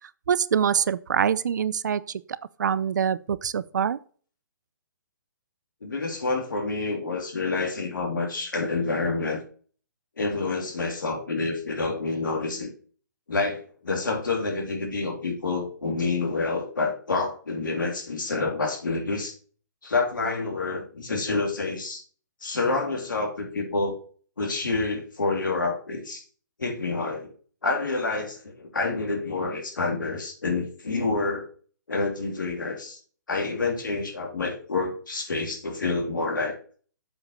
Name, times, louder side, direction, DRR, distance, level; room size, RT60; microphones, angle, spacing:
voice 1, 0.3-2.0 2.6-4.0, right 8 dB, 65° right, 0.5 m, -24 dB
voice 2, 5.8-9.4 10.2-12.7 13.3-19.3 19.8-22.0 22.4-24.0 24.4-26.2 26.6-27.3 27.6-31.5 31.9-33.0 33.3-36.5, left 3 dB, 80° left, 3.1 m, -28 dB
7.8 x 5.0 x 5.5 m
hypercardioid pair, 140°, 10 cm